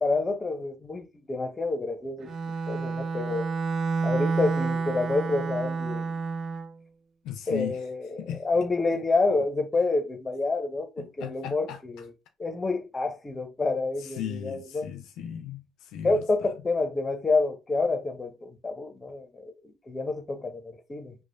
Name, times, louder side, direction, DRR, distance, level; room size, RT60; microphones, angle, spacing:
voice 1, 0.0-2.3 2.7-3.5 4.0-6.1 7.5-8.1 8.4-12.1 12.4-14.9 16.0-21.1, left 3 dB, 25° left, 0.7 m, -28 dB
Bowed string instrument, 2.2-6.7, right 4 dB, 50° right, 0.4 m, -29 dB
voice 2, 7.2-7.8 8.2-8.4 11.0-11.8 14.0-16.5, left 9 dB, 75° left, 0.4 m, -37 dB
3.1 x 2.1 x 2.5 m
supercardioid pair, 70°, 0 cm